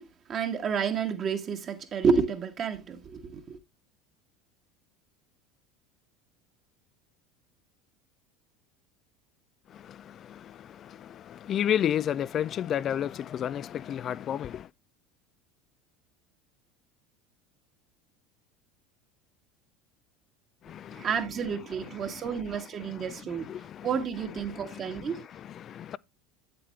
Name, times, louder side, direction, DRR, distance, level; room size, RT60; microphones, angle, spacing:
voice 1, 0.0-3.6 20.9-23.5 23.8-25.2, right 6 dB, 40° right, 1.6 m, -30 dB
voice 2, 9.7-14.7 20.6-21.1 22.0-22.4 22.8-23.9 24.5-26.0, left 10 dB, 40° left, 0.4 m, -33 dB
8.9 x 7.7 x 3.3 m
figure-of-eight pair, 75°, 0 cm